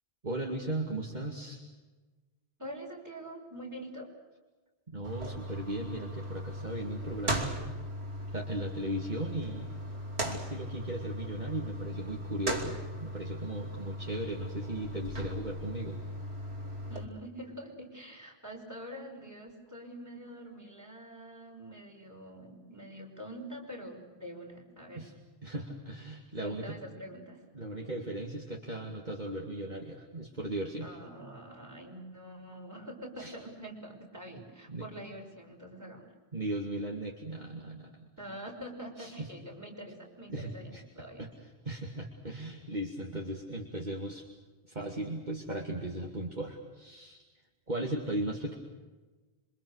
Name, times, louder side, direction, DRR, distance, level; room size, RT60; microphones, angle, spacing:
voice 1, 0.2-1.7 4.9-7.8 8.3-9.7 10.2-16.0 25.0-25.1 25.4-26.8 27.5-30.9 33.2-33.3 34.7-34.9 36.3-38.1 39.0-39.3 40.3-40.8 41.2-41.3 41.6-44.3 44.7-47.2 47.7-48.5, right 1 dB, 40° right, 0 dB, 2.6 m, -37 dB
voice 2, 2.6-4.1 16.9-25.1 26.4-27.4 30.8-36.1 38.2-41.2, equal, 15° right, -1 dB, 5.8 m, -45 dB
sound 1, 5.0-17.0, equal, 70° right, 3.4 m, -38 dB
28.0 x 25.0 x 6.5 m, 1.3 s
omnidirectional pair, 1.1 m